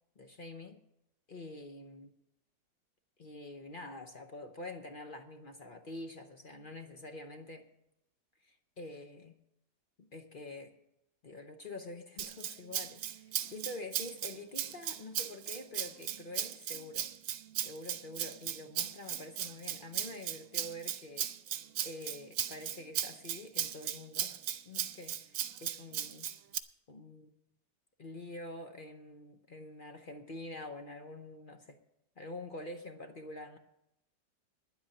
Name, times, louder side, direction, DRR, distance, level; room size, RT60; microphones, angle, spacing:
voice 1, 0.2-0.8 1.3-2.1 3.2-7.7 8.4-9.4 10.0-10.7 11.2-17.1 17.6-21.3 21.8-26.3 26.9-27.3 28.0-31.8 32.2-33.6, left 2 dB, 45° left, 6 dB, 0.6 m, -46 dB
Rattle (instrument), 12.2-26.6, right 11 dB, 80° right, 1.4 m, -37 dB
10.5 x 8.2 x 8.7 m, 0.85 s
omnidirectional pair, 2.0 m